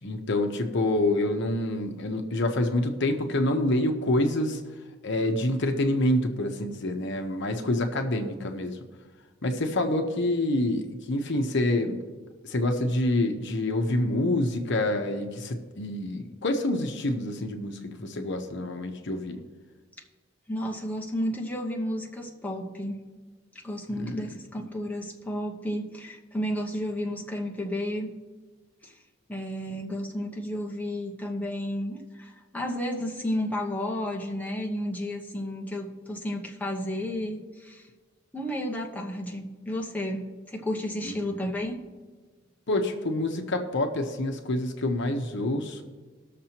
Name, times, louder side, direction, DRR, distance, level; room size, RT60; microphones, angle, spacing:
voice 1, 0.0-4.6 5.0-8.8 9.4-12.0 12.4-19.4 24.0-24.3 41.0-41.3 42.7-45.8, left 1 dB, 60° left, 5 dB, 0.9 m, -27 dB
voice 2, 20.5-23.0 23.6-28.2 28.8-28.9 29.3-37.9 38.3-41.8, equal, 10° left, -2 dB, 1.0 m, -32 dB
20.0 x 6.7 x 2.9 m, 1.4 s
head